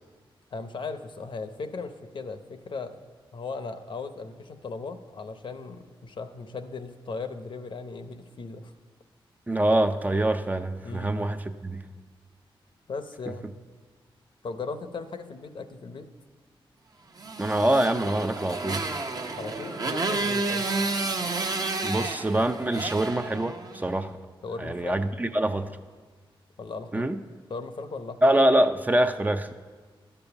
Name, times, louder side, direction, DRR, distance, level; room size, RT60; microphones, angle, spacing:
voice 1, 0.5-3.0 3.3-8.7 10.8-11.1 12.9-13.5 14.4-16.1 19.4-20.7 24.4-25.0 26.6-27.1 27.5-28.2, left 4 dB, 60° left, 8 dB, 0.7 m, -37 dB
voice 2, 9.5-11.8 17.4-18.9 21.8-24.1 24.6-25.8 26.9-27.2 28.2-29.5, right 1 dB, 15° right, 8 dB, 0.5 m, -25 dB
Motorcycle, 17.2-23.9, right 3 dB, 40° right, 0.8 m, -30 dB
11.5 x 6.9 x 7.0 m, 1.5 s
wide cardioid pair, 100°, 9 cm